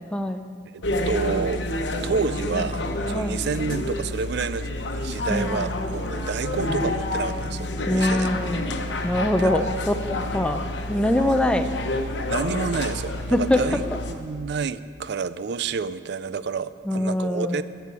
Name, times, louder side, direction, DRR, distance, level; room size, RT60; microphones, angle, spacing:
voice 1, 0.1-0.5 3.1-3.4 5.3-5.7 7.9-8.7 9.0-11.7 13.3-13.8 16.9-17.6, left 1 dB, 5° left, 7 dB, 0.4 m, -23 dB
voice 2, 0.7-1.6 2.0-8.3 9.4-9.7 12.3-17.6, right 5 dB, 65° right, 15 dB, 0.4 m, -29 dB
sound 1, 0.8-14.1, left 1 dB, 75° left, 1.0 m, -28 dB
12.0 x 7.0 x 8.2 m, 2.2 s
head